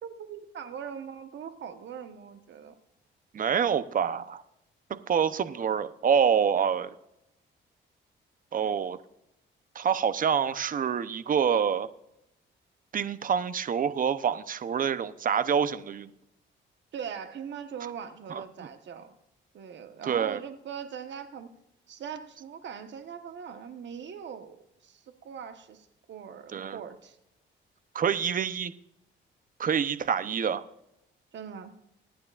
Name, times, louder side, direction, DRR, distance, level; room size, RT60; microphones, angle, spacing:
voice 1, 0.0-2.7 16.9-19.1 19.5-21.5 21.9-27.2 31.3-31.7, right 7 dB, 65° right, 8 dB, 1.3 m, -41 dB
voice 2, 3.3-4.4 4.9-6.9 8.5-9.0 9.7-11.9 12.9-16.1 18.3-18.7 20.1-20.4 26.5-26.8 27.9-28.7 29.6-30.6, right 7 dB, 45° right, 13 dB, 0.8 m, -27 dB
25.0 x 9.5 x 2.5 m, 0.86 s
cardioid pair, 90°, 20 cm